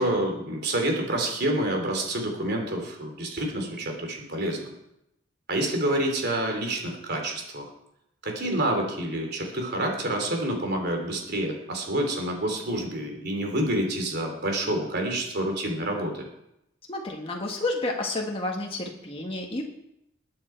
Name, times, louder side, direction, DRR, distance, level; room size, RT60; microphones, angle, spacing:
voice 1, 0.0-4.7 5.5-7.7 8.2-16.2, right 1 dB, 55° right, 2 dB, 3.3 m, -28 dB
voice 2, 16.9-19.6, left 2 dB, 25° left, 0 dB, 1.6 m, -30 dB
21.0 x 9.0 x 4.6 m, 0.83 s
head